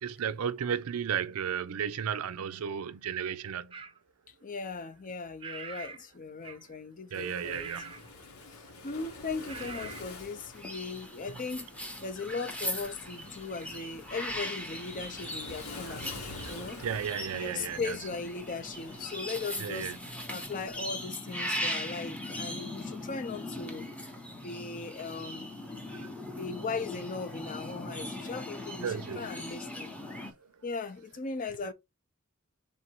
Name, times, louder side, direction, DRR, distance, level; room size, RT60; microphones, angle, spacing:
voice 1, 0.0-3.7 7.1-7.9 15.8-16.0 16.4-18.0 19.6-20.0 25.9-26.1 28.8-29.2, right 8 dB, 75° right, 0.4 m, -34 dB
sound 1, 3.7-4.0 5.4-6.0 6.4-6.7 7.5-8.1 9.5-10.0, right 5 dB, 25° right, 0.5 m, -43 dB
voice 2, 4.4-7.7 8.8-11.7 12.0-16.1 16.5-16.8 17.3-19.9 20.3-23.9 24.3-25.5 26.3-29.9 30.6-31.7, left 4 dB, 40° left, 0.5 m, -38 dB
Waves surf, 7.1-20.7, left 3 dB, 80° left, 1.1 m, -48 dB
sound 2, 10.5-30.3, left 1 dB, 5° left, 0.7 m, -39 dB
3.6 x 2.6 x 4.4 m
head